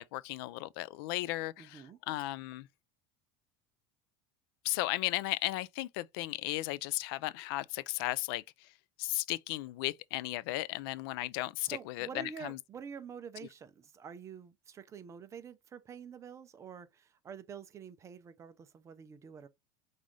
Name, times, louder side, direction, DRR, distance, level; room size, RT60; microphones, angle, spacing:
voice 1, 0.0-2.7 4.6-8.4 9.0-12.6, left 18 dB, 75° left, 0.4 m, -35 dB
voice 2, 1.6-2.0 11.6-19.5, right 6 dB, 25° right, 0.5 m, -47 dB
5.3 x 2.5 x 3.1 m
supercardioid pair, 145°, 12 cm